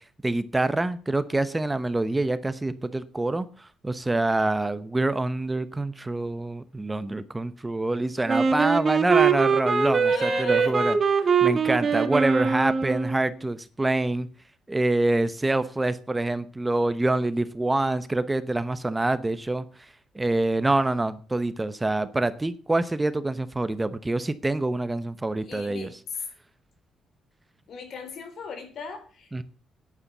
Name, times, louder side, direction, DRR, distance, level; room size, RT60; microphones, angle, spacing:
voice 1, 0.2-14.3 14.7-19.6 20.1-25.9 29.3-29.4, right 2 dB, 15° right, 13 dB, 0.9 m, -26 dB
Wind instrument woodwind instrument, 8.3-13.3, right 5 dB, 40° right, 2.0 m, -23 dB
voice 2, 10.0-10.8 25.4-26.2 27.7-29.4, left 5 dB, 60° left, 8 dB, 4.2 m, -38 dB
10.0 x 9.4 x 7.2 m, 0.40 s
cardioid pair, 90°, 0 cm